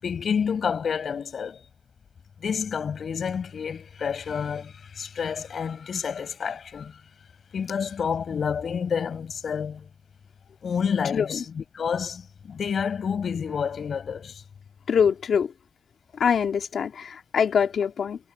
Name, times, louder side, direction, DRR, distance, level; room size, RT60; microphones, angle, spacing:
voice 1, 0.0-1.6 2.4-7.0 7.5-9.9 10.6-14.4, left 6 dB, 70° left, 6.8 m, -29 dB
voice 2, 11.1-11.4 14.9-15.5 16.2-18.2, left 7 dB, 90° left, 2.9 m, -24 dB
wide cardioid pair, 150°, 0 cm